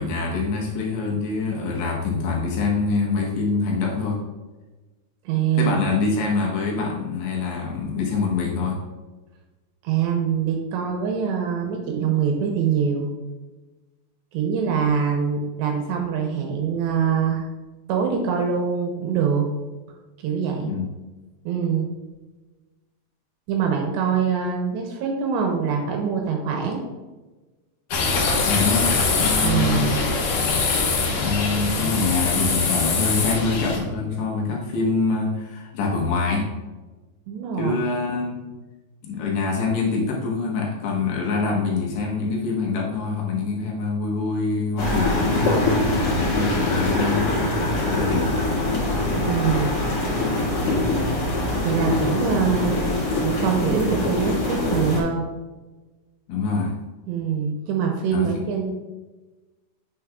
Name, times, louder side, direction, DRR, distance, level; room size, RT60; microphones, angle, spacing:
voice 1, 0.0-4.2 5.6-8.8 20.6-20.9 28.4-28.9 29.2-30.0 31.2-36.5 37.6-38.5 39.0-45.5 45.9-47.4 47.9-48.4 50.6-50.9 56.3-56.7 58.1-58.3, left 4 dB, 75° left, -2 dB, 3.0 m, -25 dB
voice 2, 5.3-5.9 9.8-13.1 14.3-17.4 17.9-19.5 20.2-20.7 21.5-21.9 23.5-26.8 29.4-30.0 37.3-37.8 49.2-49.7 51.6-55.2 57.1-58.7, right 7 dB, 80° right, 2 dB, 2.7 m, -24 dB
sound 1, 27.9-33.8, left 4 dB, 90° left, 1.7 m, -23 dB
sound 2, 44.8-55.0, left 2 dB, 45° left, 2.7 m, -23 dB
8.4 x 6.7 x 2.3 m, 1.2 s
omnidirectional pair, 5.4 m